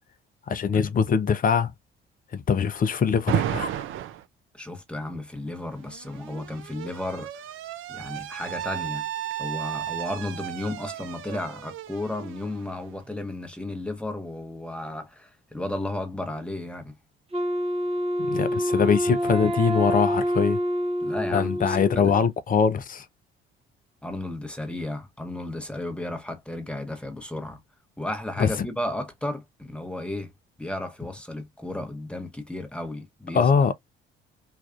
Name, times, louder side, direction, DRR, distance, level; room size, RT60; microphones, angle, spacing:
voice 1, 0.5-1.7 2.3-3.8 18.2-20.6 21.3-23.1 28.4-28.5 33.3-33.7, left 6 dB, 30° left, 0.5 m, -23 dB
Alarm, 3.3-4.2 5.5-13.2, right 11 dB, 45° right, 0.5 m, -33 dB
voice 2, 4.5-7.4 7.9-9.1 9.4-17.0 21.0-22.2 24.0-27.6 28.0-30.3 30.6-33.5, left 1 dB, 5° left, 0.9 m, -33 dB
Wind instrument woodwind instrument, 17.3-22.3, equal, 20° right, 0.8 m, -27 dB
3.2 x 2.4 x 2.4 m
figure-of-eight pair, 50°, 30 cm